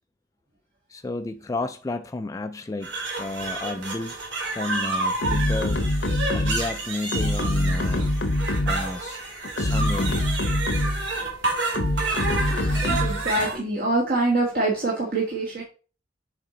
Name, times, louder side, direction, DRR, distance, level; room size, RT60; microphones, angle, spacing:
voice 1, 0.9-4.2 4.4-5.9 6.3-8.1 8.7-9.2 9.6-10.2, left 2 dB, 20° left, 0.3 m, -32 dB
sound 1, 2.8-13.5, right 3 dB, 75° right, 2.5 m, -30 dB
sound 2, 5.2-6.7 7.1-8.9 9.4-11.1 11.8-13.3, left 1 dB, 65° left, 0.8 m, -24 dB
voice 2, 12.5-15.6, right 2 dB, 55° right, 1.6 m, -25 dB
7.4 x 4.2 x 3.8 m
head